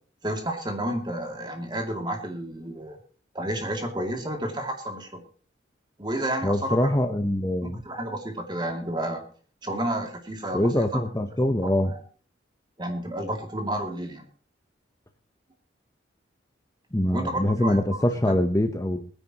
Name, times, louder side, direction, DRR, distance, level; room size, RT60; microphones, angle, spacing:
voice 1, 0.2-3.0 3.3-5.2 6.0-7.2 7.6-9.3 9.6-11.0 11.6-12.0 12.8-14.3 17.1-18.4, right 1 dB, 25° right, 3 dB, 2.5 m, -31 dB
voice 2, 6.4-7.8 10.5-11.9 16.9-19.1, left 1 dB, 15° left, 5 dB, 0.8 m, -24 dB
22.0 x 10.0 x 3.0 m, 0.42 s
head